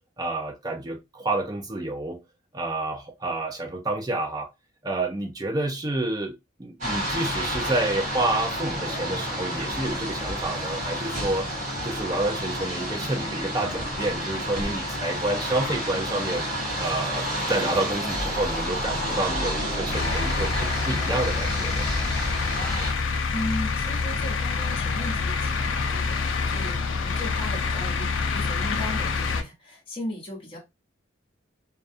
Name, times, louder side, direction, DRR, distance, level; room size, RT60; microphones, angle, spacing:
voice 1, 0.2-2.2 2.5-4.5 4.8-6.3 6.6-11.5 11.8-16.4 16.8-21.9, right 2 dB, 20° right, 0.4 m, -29 dB
sound 1, 6.8-22.9, equal, 35° right, 1.2 m, -30 dB
sound 2, 19.9-29.4, left 4 dB, 70° left, 0.4 m, -27 dB
voice 2, 23.3-30.6, left 1 dB, 25° left, 0.9 m, -36 dB
2.3 x 2.2 x 2.6 m
head